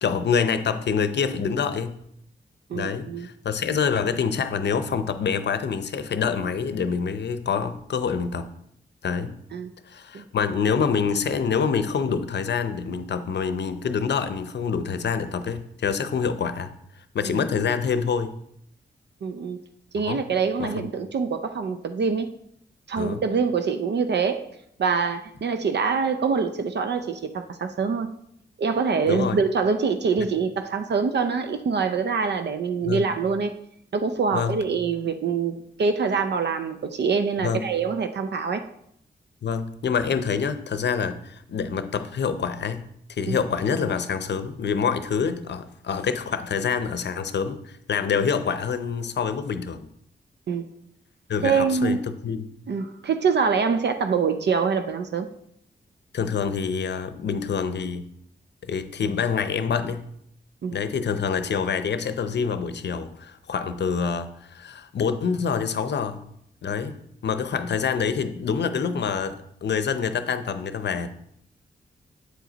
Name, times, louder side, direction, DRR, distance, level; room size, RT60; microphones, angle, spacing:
voice 1, 0.0-2.0 2.7-8.5 9.0-9.4 9.9-16.7 17.1-18.4 20.0-20.2 20.6-20.9 23.0-23.2 29.1-29.4 30.2-30.3 32.8-33.1 34.3-34.6 37.4-37.7 39.4-49.9 51.3-52.5 56.1-58.1 58.6-60.1 60.7-66.2 66.6-67.0 67.2-71.1, left 6 dB, 65° left, 11 dB, 0.6 m, -26 dB
voice 2, 2.7-3.3 9.5-9.7 10.1-10.2 19.2-19.6 19.9-22.3 22.9-24.5 24.8-28.1 28.6-33.5 33.9-38.6 43.3-43.4 50.5-50.7 51.4-52.0 52.7-55.3 60.6-60.8, right 5 dB, 60° right, 8 dB, 0.5 m, -25 dB
7.9 x 4.9 x 3.9 m, 0.73 s
cardioid pair, 50°, 19 cm